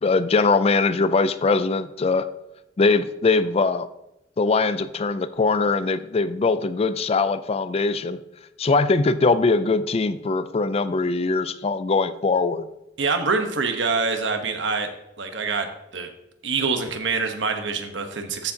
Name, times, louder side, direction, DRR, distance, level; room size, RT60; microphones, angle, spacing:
voice 1, 0.0-2.3 2.8-3.9 4.4-8.2 8.6-12.7, left 3 dB, 35° left, 13 dB, 0.4 m, -21 dB
voice 2, 13.0-14.9 15.2-16.1 16.4-18.5, right 4 dB, 75° right, 6 dB, 1.1 m, -25 dB
13.5 x 7.0 x 2.8 m, 0.89 s
head